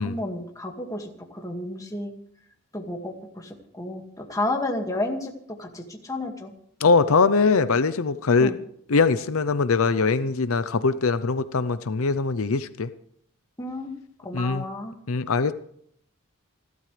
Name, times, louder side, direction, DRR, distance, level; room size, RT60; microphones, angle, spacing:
voice 1, 0.0-2.1 2.7-5.3 5.6-6.5 8.4-8.5 13.6-14.0 14.2-14.9, left 1 dB, 15° left, 2 dB, 2.1 m, -31 dB
voice 2, 6.8-8.5 8.9-12.9 14.3-14.7 15.1-15.5, left 4 dB, 75° left, 13 dB, 0.7 m, -22 dB
29.5 x 12.5 x 3.4 m, 0.66 s
head